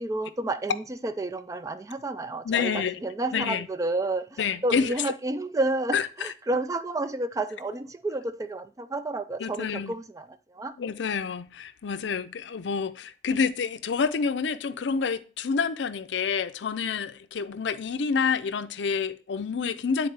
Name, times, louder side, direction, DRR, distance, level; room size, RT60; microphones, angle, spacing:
voice 1, 0.0-10.3 10.5-10.7, right 2 dB, 20° right, 0.3 m, -30 dB
voice 2, 2.4-3.0 3.3-3.7 4.4-4.9 5.9-6.3 9.4-9.9 10.8-20.1, left 5 dB, 75° left, 0.5 m, -28 dB
9.3 x 4.0 x 3.3 m
head